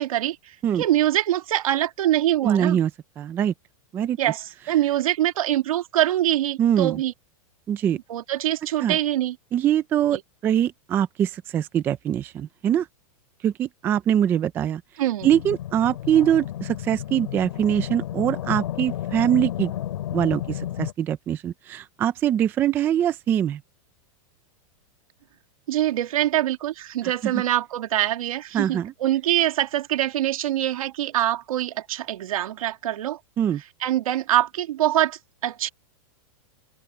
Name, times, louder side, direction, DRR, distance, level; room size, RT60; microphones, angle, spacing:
voice 1, 0.0-2.8 4.2-7.1 8.1-9.4 10.1-10.2 15.0-15.3 25.7-33.2 33.8-35.7, right 13 dB, 75° right, 2.4 m, -24 dB
voice 2, 2.4-2.9 3.2-3.5 3.9-4.2 6.6-7.0 7.7-8.0 8.8-9.0 9.5-12.9 13.4-14.8 15.2-19.7 20.1-23.6 27.0-27.3 28.5-28.9 33.4-33.6, right 10 dB, 10° right, 0.4 m, -23 dB
sound 1, 15.2-20.9, left 12 dB, 70° left, 5.0 m, -31 dB
supercardioid pair, 175°, 18 cm